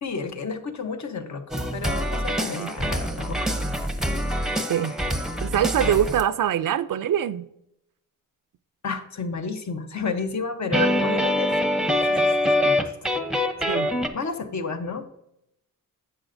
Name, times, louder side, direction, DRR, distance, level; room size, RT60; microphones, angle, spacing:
voice 1, 0.0-1.4 1.7-3.5 8.8-11.5 12.0-12.3 12.6-13.0 14.1-15.0, left 4 dB, 50° left, 0.9 m, -31 dB
sound 1, 1.5-6.2 10.7-14.1, left 1 dB, ahead, 0.7 m, -24 dB
voice 2, 5.4-7.5 10.7-10.9 13.7-13.9, right 10 dB, 65° right, 0.5 m, -24 dB
11.0 x 7.5 x 2.6 m
wide cardioid pair, 115°, 35 cm